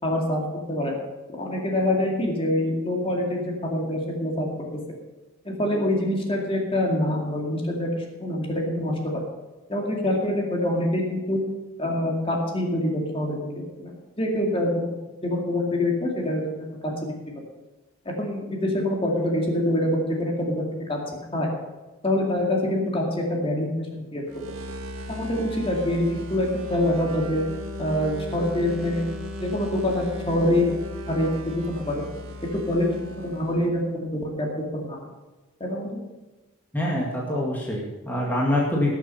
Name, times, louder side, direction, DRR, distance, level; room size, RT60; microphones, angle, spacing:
voice 1, 0.0-1.0 1.3-4.5 5.4-9.2 9.7-11.4 11.8-17.1 18.2-21.0 21.3-21.5 22.0-24.2 25.1-27.4 27.8-29.1 29.4-30.8 31.1-32.0 32.7-34.5 34.7-35.0 35.6-36.0, left 1 dB, 25° left, 0 dB, 2.2 m, -25 dB
sound 1, 24.3-33.8, equal, 80° right, 1.5 m, -37 dB
voice 2, 36.7-38.9, left 1 dB, 10° left, -4 dB, 2.0 m, -25 dB
18.5 x 7.3 x 5.6 m, 1.2 s
head